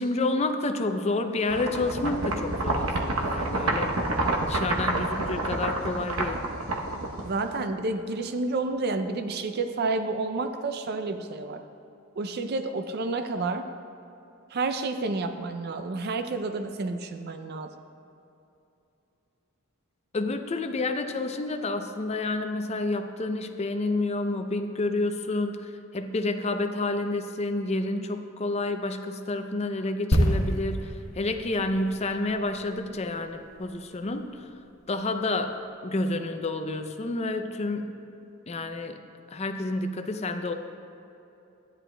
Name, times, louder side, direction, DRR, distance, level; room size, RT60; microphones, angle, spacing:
voice 1, 0.0-3.9 4.4-6.4 20.1-34.5 34.9-37.9 38.5-39.0 39.3-40.5, left 2 dB, 30° left, 7 dB, 0.5 m, -29 dB
sound 1, 1.5-7.6, right 2 dB, 70° right, 0.9 m, -28 dB
voice 2, 7.2-11.6 12.2-13.7 14.5-17.7, right 3 dB, 45° right, 7 dB, 0.4 m, -30 dB
sound 2, 30.1-33.8 34.0-34.2, equal, 70° left, 1.1 m, -28 dB
13.0 x 9.9 x 2.2 m, 2.8 s
head